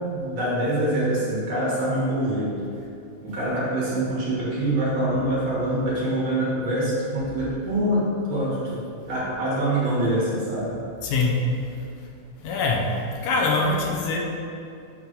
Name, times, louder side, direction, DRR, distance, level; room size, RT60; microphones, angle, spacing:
voice 1, 0.0-2.6 3.2-8.8 9.1-10.8, right 1 dB, 55° right, -7 dB, 2.4 m, -25 dB
voice 2, 11.0-11.4 12.4-12.9 13.2-14.2, left 3 dB, 85° left, -1 dB, 2.5 m, -23 dB
7.8 x 3.3 x 5.1 m, 2.6 s
omnidirectional pair, 3.7 m